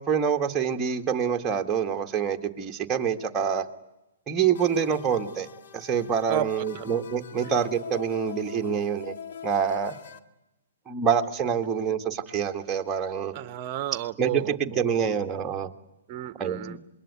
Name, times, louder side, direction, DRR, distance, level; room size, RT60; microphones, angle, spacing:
voice 1, 0.0-3.7 4.3-5.5 5.7-9.1 9.4-10.0 10.9-13.3 14.2-15.7 16.4-16.8, right 7 dB, 15° right, 4 dB, 1.7 m, -26 dB
sound 1, 4.5-10.2, left 8 dB, 55° left, 1.8 m, -43 dB
voice 2, 6.3-7.0 7.4-7.5 13.3-14.9 16.1-16.8, right 12 dB, 35° right, 14 dB, 1.1 m, -33 dB
27.0 x 21.5 x 9.6 m, 0.92 s
hypercardioid pair, 140°, 0 cm